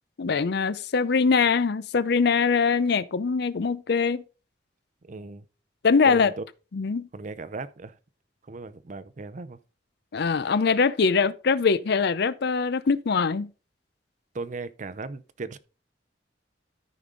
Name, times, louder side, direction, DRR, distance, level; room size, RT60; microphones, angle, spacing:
voice 1, 0.2-4.2 5.8-6.3 6.7-7.1 10.1-13.5, left 5 dB, 60° left, 0.5 m, -23 dB
voice 2, 5.0-5.4 6.1-6.4 7.1-8.0 8.5-9.6 14.3-15.6, right 3 dB, 45° right, 0.6 m, -37 dB
13.5 x 5.2 x 3.8 m
head